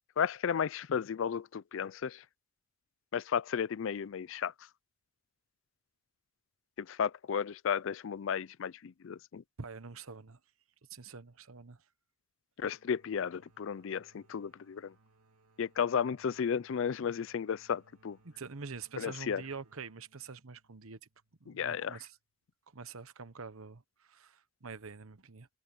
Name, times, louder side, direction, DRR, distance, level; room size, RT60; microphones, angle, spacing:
voice 1, 0.2-2.2 3.1-4.5 6.8-9.4 12.6-14.9 15.6-18.2 19.0-19.4 21.5-22.0, left 7 dB, 65° left, 0.4 m, -33 dB
voice 2, 9.6-10.4 10.9-11.8 18.2-21.0 21.4-22.2 22.7-25.5, right 5 dB, 75° right, 1.1 m, -46 dB
sound 1, 12.7-22.2, right 2 dB, 90° right, 3.5 m, -68 dB
head